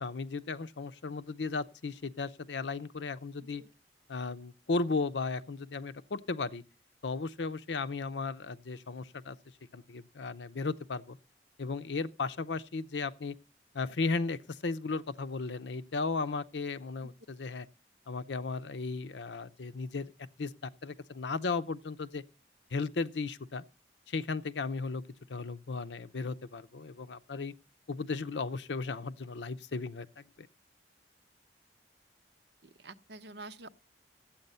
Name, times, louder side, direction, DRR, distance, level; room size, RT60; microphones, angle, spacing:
voice 1, 0.0-3.6 4.1-6.6 7.0-9.4 9.7-11.2 11.6-13.4 13.7-17.7 18.1-20.1 20.4-22.2 22.7-23.6 24.1-25.0 25.3-27.5 27.9-30.5, left 4 dB, 90° left, 0.7 m, -35 dB
voice 2, 32.6-33.7, right 2 dB, 70° right, 0.8 m, -47 dB
12.0 x 8.6 x 5.5 m
head